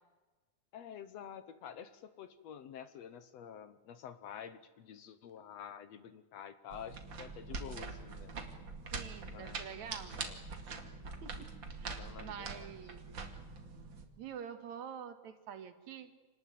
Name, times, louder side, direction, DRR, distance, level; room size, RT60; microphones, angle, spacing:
voice 1, 0.7-8.3 9.3-9.8 10.2-10.4 11.8-12.9, left 8 dB, 65° left, 13 dB, 2.0 m, -49 dB
sound 1, 6.7-14.0, right 4 dB, 40° right, 2.6 m, -44 dB
voice 2, 8.9-10.2 11.2-13.0 14.2-16.1, right 8 dB, 70° right, 9 dB, 3.0 m, -47 dB
27.0 x 19.5 x 9.3 m, 1.2 s
omnidirectional pair, 3.5 m